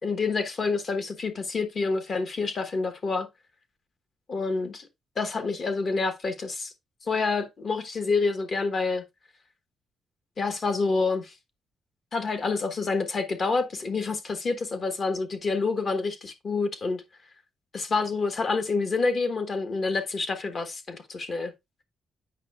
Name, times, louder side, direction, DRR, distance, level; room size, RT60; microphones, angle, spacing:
voice 1, 0.0-3.3 4.3-4.9 5.2-6.7 7.0-9.0 10.4-11.3 12.1-17.0 17.7-21.5, left 4 dB, 35° left, 1.1 m, -28 dB
8.3 x 5.5 x 2.3 m
cardioid pair, 150°, 0 cm